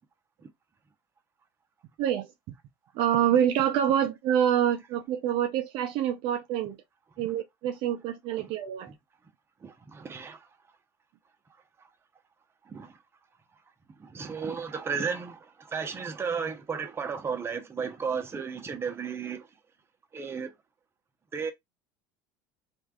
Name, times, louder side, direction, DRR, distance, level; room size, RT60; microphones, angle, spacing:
voice 1, 2.0-2.5 2.9-6.8 7.2-8.9, right 10 dB, 60° right, 0.5 m, -26 dB
voice 2, 9.6-10.4 12.7-12.9 14.0-19.5 20.1-20.5 21.3-21.5, right 6 dB, 25° right, 0.7 m, -34 dB
3.2 x 2.5 x 2.3 m
supercardioid pair, 95°, 10 cm